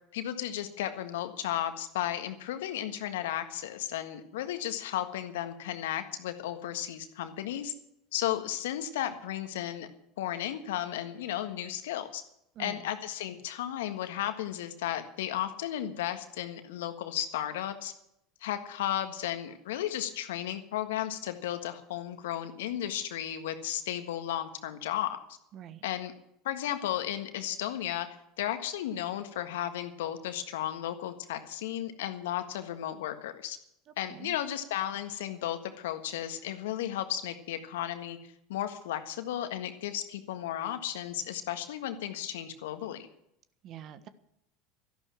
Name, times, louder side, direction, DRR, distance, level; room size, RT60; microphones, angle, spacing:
voice 1, 0.1-7.7 8.1-9.9 10.2-12.2 12.6-17.9 18.4-25.2 25.8-26.1 26.4-28.1 28.4-33.6 34.0-43.1, left 12 dB, 70° left, 9 dB, 1.6 m, -34 dB
voice 2, 12.5-12.9 25.5-25.8 34.1-34.3 43.6-44.1, right 9 dB, 45° right, 13 dB, 1.3 m, -45 dB
13.0 x 11.5 x 7.5 m, 0.78 s
hypercardioid pair, 80°, 0 cm